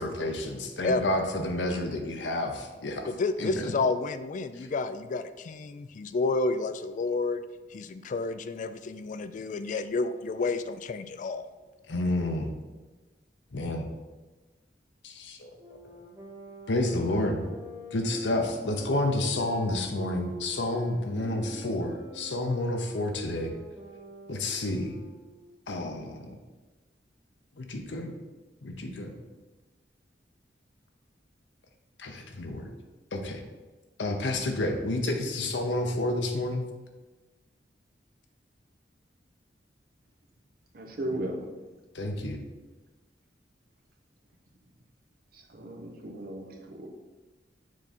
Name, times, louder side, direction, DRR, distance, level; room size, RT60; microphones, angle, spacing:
voice 1, 0.0-3.1 3.4-3.7 11.9-12.5 13.5-13.9 15.0-15.5 16.7-17.4 17.9-23.5 24.3-24.9 25.7-26.4 27.6-28.1 28.6-29.1 32.0-32.7 33.1-33.4 34.0-36.7 41.9-42.4, left 1 dB, 80° left, 3 dB, 0.8 m, -30 dB
voice 2, 3.1-7.4 7.7-11.5, left 3 dB, 45° left, 11 dB, 0.3 m, -30 dB
sound 1, 15.6-25.6, equal, 15° right, 1.1 m, -46 dB
voice 3, 40.7-41.5 45.3-46.9, right 1 dB, 55° right, 2 dB, 0.9 m, -36 dB
6.3 x 3.7 x 4.2 m, 1.2 s
head